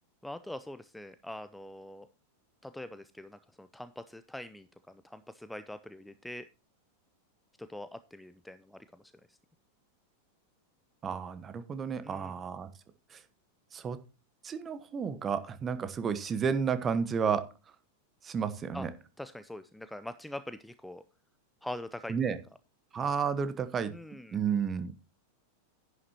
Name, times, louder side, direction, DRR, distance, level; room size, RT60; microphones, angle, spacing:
voice 1, 0.2-2.1 2.6-6.5 7.6-9.4 12.0-12.3 18.7-18.9 19.2-21.0 21.6-22.1 23.9-24.4, left 1 dB, 5° left, 12 dB, 0.5 m, -43 dB
voice 2, 11.0-12.7 13.1-13.2 13.7-14.0 14.4-17.5 18.2-18.9 22.1-22.4 22.9-23.9 24.3-24.9, right 6 dB, 25° right, 13 dB, 1.1 m, -31 dB
11.0 x 9.8 x 2.8 m, 0.33 s
figure-of-eight pair, 90°, 0 cm